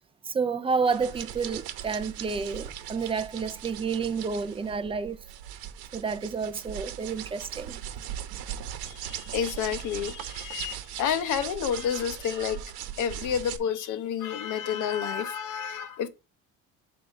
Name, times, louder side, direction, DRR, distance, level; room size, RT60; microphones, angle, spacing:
voice 1, 0.3-5.2 5.9-7.8, right 5 dB, 15° right, 0.4 m, -30 dB
sound 1, 0.9-13.6, right 11 dB, 80° right, 0.9 m, -39 dB
voice 2, 8.9-12.6 13.0-16.1, left 8 dB, 55° left, 0.9 m, -30 dB
7.7 x 2.9 x 6.1 m
cardioid pair, 170°, 36 cm